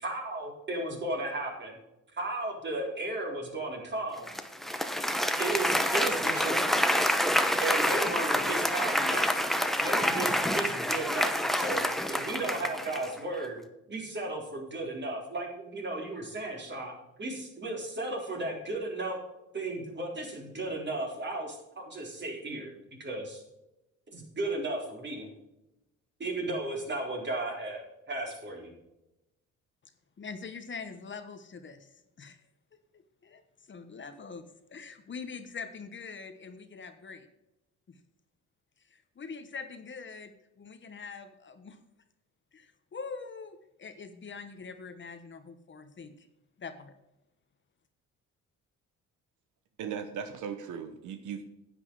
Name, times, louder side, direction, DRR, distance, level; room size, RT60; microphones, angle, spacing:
voice 1, 0.0-1.8 2.1-4.3 5.4-6.7 7.6-9.3 9.8-13.6 13.9-19.2 19.5-23.4 24.1-25.3 26.2-28.7, right 2 dB, 35° right, 0 dB, 4.0 m, -35 dB
Applause, 4.3-13.2, equal, ahead, 1.0 m, -27 dB
voice 2, 30.2-32.4 32.9-33.4 33.7-37.3 37.9-38.0 38.9-41.8 42.5-46.3 46.6-46.9, left 5 dB, 40° left, 9 dB, 1.1 m, -44 dB
voice 3, 49.8-51.4, right 7 dB, 80° right, 8 dB, 1.1 m, -37 dB
9.9 x 8.9 x 4.7 m, 0.92 s
cardioid pair, 90°, 30 cm